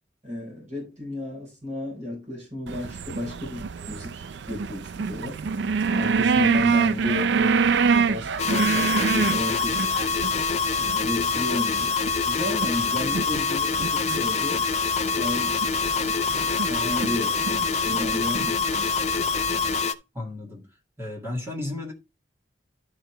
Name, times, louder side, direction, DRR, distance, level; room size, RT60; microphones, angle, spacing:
voice 1, 0.2-5.5 5.9-9.8 10.8-11.9 12.2-14.7 15.1-15.6 16.3-18.9, left 1 dB, 40° right, 4.2 m, -33 dB
sound 1, 2.7-19.8, right 5 dB, 65° right, 0.4 m, -27 dB
sound 2, 8.4-19.9, left 5 dB, 35° left, 0.4 m, -25 dB
voice 2, 12.8-13.3 20.1-20.7 21.0-21.9, left 2 dB, 15° right, 2.0 m, -34 dB
11.0 x 4.6 x 3.2 m
head